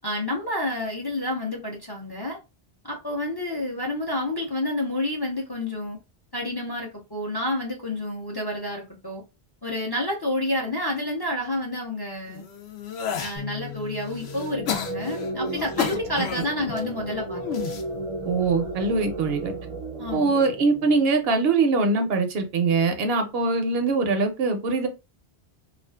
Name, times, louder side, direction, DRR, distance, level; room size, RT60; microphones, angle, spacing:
voice 1, 0.0-2.4 2.8-6.0 6.3-9.2 9.6-12.4 13.2-17.4 20.0-20.4, left 1 dB, 30° left, 0.5 m, -29 dB
sound 1, 12.3-13.4 13.9-16.8 17.4-17.8 18.6-19.0, left 7 dB, 80° left, 0.8 m, -32 dB
sound 2, 13.4-19.6, left 9 dB, 50° left, 1.0 m, -44 dB
sound 3, 14.1-21.5, right 2 dB, 50° right, 0.5 m, -35 dB
voice 2, 18.3-19.5 20.1-24.9, right 3 dB, 70° right, 0.8 m, -22 dB
2.4 x 2.3 x 2.2 m
omnidirectional pair, 1.1 m